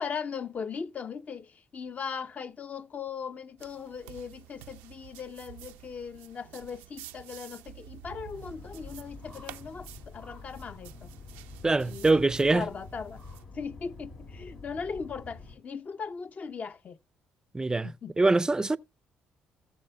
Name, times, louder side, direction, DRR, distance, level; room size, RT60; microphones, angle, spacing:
voice 1, 0.0-11.1 11.8-12.1 12.5-13.2 13.5-17.0 17.8-18.1, left 6 dB, 45° left, 0.6 m, -38 dB
sound 1, 3.6-13.4, right 14 dB, 85° right, 0.5 m, -50 dB
sound 2, 8.0-15.6, left 3 dB, 90° left, 3.5 m, -47 dB
voice 2, 11.6-12.7 17.5-18.8, right 3 dB, 20° right, 0.4 m, -24 dB
18.0 x 6.7 x 2.2 m
supercardioid pair, 60°, 4 cm